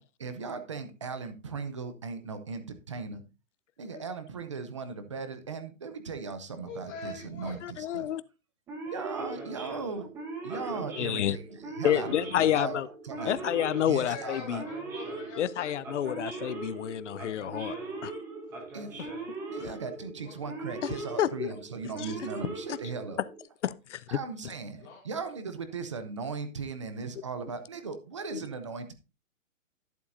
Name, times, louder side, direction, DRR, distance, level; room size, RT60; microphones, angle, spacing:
voice 1, 0.0-3.2 3.8-8.1 8.9-10.1 10.4-12.8 13.0-13.4 13.9-14.6 18.7-18.9 19.5-23.2 24.1-28.9, right 4 dB, 25° right, 0.6 m, -38 dB
voice 2, 6.6-7.5 13.7-15.8 20.2-20.4 24.8-25.0, left 3 dB, 15° left, 1.4 m, -43 dB
voice 3, 7.6-8.2 11.0-11.4 11.8-12.9 13.2-14.6 15.4-17.8 18.0-18.1 20.8-21.5 22.0-22.1 22.7-22.8 23.6-24.2 28.3-28.4, left 11 dB, 60° left, 0.6 m, -29 dB
Male speech man speaking / Siren, 8.7-23.4, right 3 dB, 5° right, 0.9 m, -40 dB
12.0 x 7.3 x 2.6 m
hypercardioid pair, 170°, 40 cm